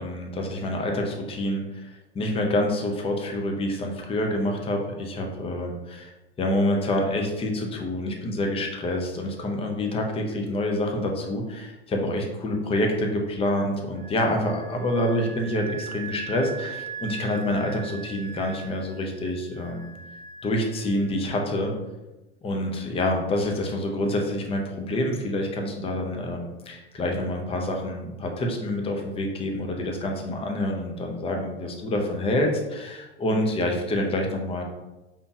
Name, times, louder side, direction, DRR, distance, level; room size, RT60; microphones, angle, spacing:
voice 1, 0.0-6.1 6.4-19.9 20.4-21.7 22.4-34.6, left 1 dB, 15° left, 2 dB, 0.6 m, -27 dB
Wind instrument woodwind instrument, 14.0-21.4, right 6 dB, 25° right, 0.5 m, -41 dB
5.1 x 2.9 x 2.4 m, 1.0 s
hypercardioid pair, 85°, 33 cm